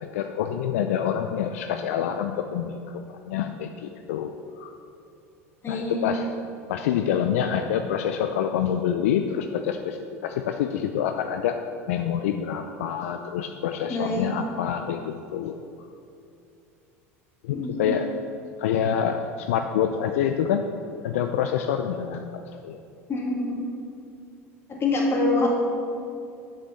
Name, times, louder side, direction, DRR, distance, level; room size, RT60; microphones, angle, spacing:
voice 1, 0.0-4.7 5.7-6.3 6.7-11.6 11.9-15.6 17.4-18.1 18.6-20.6 21.0-22.8, left 9 dB, 75° left, 6 dB, 0.4 m, -27 dB
voice 2, 5.6-6.2 13.9-14.3 17.5-17.9 23.1-23.6 24.7-25.5, left 2 dB, 35° left, -2 dB, 2.3 m, -26 dB
6.5 x 6.3 x 6.9 m, 2.6 s
hypercardioid pair, 80°, 8 cm